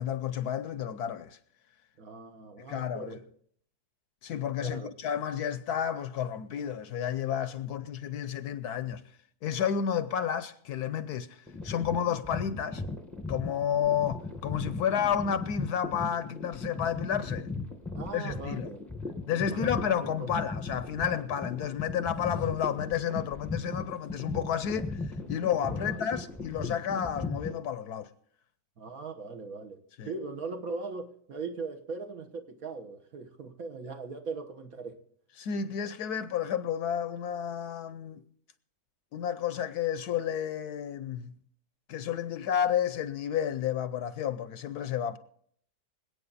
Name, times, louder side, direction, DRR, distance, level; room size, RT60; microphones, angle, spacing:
voice 1, 0.0-1.4 2.6-3.2 4.2-9.0 9.4-12.8 13.3-17.5 18.1-18.7 19.3-28.1 30.0-30.1 35.4-38.2 39.1-41.3 41.9-45.2, left 8 dB, 70° left, 1.1 m, -31 dB
voice 2, 2.0-3.2 4.6-4.9 17.9-18.9 19.3-20.1 25.6-26.0 28.8-29.8 30.0-35.0, right 4 dB, 55° right, 1.6 m, -40 dB
sound 1, 11.5-27.6, left 3 dB, ahead, 1.1 m, -37 dB
26.0 x 8.8 x 4.0 m
omnidirectional pair, 1.9 m